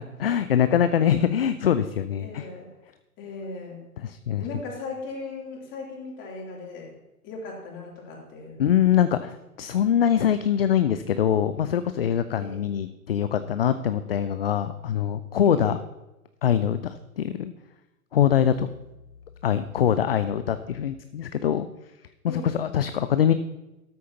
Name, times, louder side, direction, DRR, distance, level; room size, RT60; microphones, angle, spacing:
voice 1, 0.0-2.5 4.0-4.4 8.6-15.8 16.4-17.5 18.1-18.7 19.4-21.7 22.3-23.3, left 9 dB, 40° left, 12 dB, 0.5 m, -23 dB
voice 2, 2.2-2.7 3.2-3.8 4.4-6.9 7.2-8.6 12.3-12.6 15.4-15.8 22.3-22.7, left 3 dB, 25° left, -2 dB, 3.1 m, -38 dB
13.0 x 12.5 x 2.9 m, 1.0 s
figure-of-eight pair, 130°, 46 cm